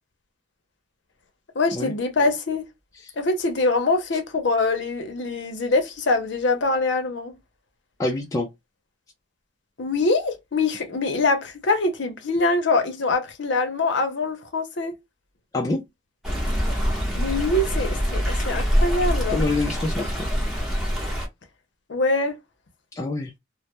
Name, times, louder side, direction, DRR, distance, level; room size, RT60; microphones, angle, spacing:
voice 1, 1.5-2.7 3.2-7.3 9.8-14.9 17.1-19.4 21.9-22.4, left 3 dB, 65° left, 0.6 m, -24 dB
voice 2, 8.0-8.5 15.5-15.8 19.3-20.1 23.0-23.3, left 2 dB, 15° left, 0.3 m, -25 dB
Stream, 16.2-21.3, equal, ahead, 0.8 m, -24 dB
2.2 x 2.0 x 2.8 m
head